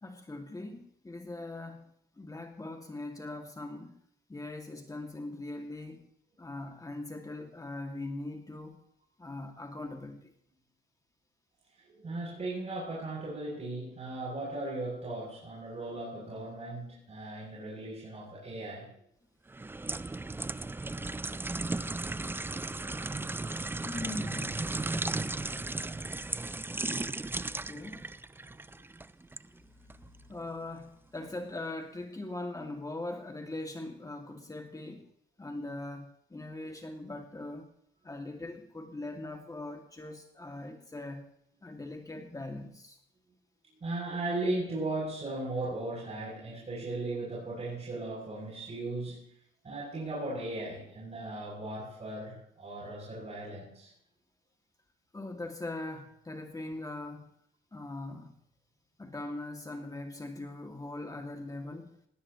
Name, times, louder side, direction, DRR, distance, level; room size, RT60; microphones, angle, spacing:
voice 1, 0.0-4.0 4.3-6.1 6.4-8.8 9.2-10.3 23.1-23.2 23.6-24.8 27.6-28.1 29.8-35.1 35.4-37.7 38.0-41.2 41.6-43.0 55.1-57.3 57.7-58.3 59.0-62.0, left 2 dB, 15° left, 3 dB, 2.2 m, -41 dB
voice 2, 11.8-18.9 28.7-28.8 30.2-30.4 43.7-49.3 49.6-53.9, right 2 dB, 35° right, -5 dB, 7.3 m, -37 dB
sound 1, 19.5-29.5 29.9-30.1, right 2 dB, 10° right, 0.5 m, -35 dB
18.5 x 17.5 x 3.1 m, 0.69 s
cardioid pair, 90°, 20 cm